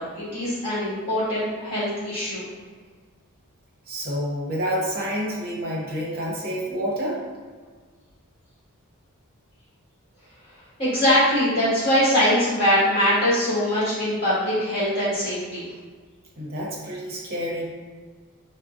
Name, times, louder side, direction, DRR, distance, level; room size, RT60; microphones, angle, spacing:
voice 1, 0.0-2.4 10.8-15.7, equal, 25° left, -11 dB, 1.5 m, -22 dB
voice 2, 3.9-7.2 16.4-17.7, equal, 45° right, -4 dB, 0.8 m, -28 dB
3.7 x 2.1 x 2.5 m, 1.5 s
head